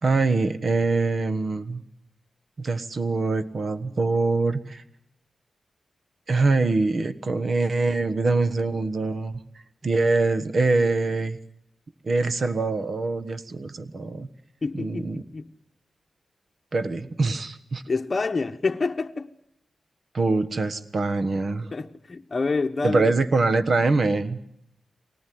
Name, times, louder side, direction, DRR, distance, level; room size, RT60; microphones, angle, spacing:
voice 1, 0.0-1.8 2.6-4.8 6.3-9.4 9.8-11.4 12.0-14.3 14.7-15.2 16.7-17.8 20.1-21.7 22.8-24.4, right 3 dB, 55° right, 1.3 m, -24 dB
voice 2, 14.6-15.5 17.9-19.3 21.7-23.1, left 4 dB, 40° left, 1.0 m, -27 dB
24.0 x 18.5 x 9.4 m
cardioid pair, 80°, 0 cm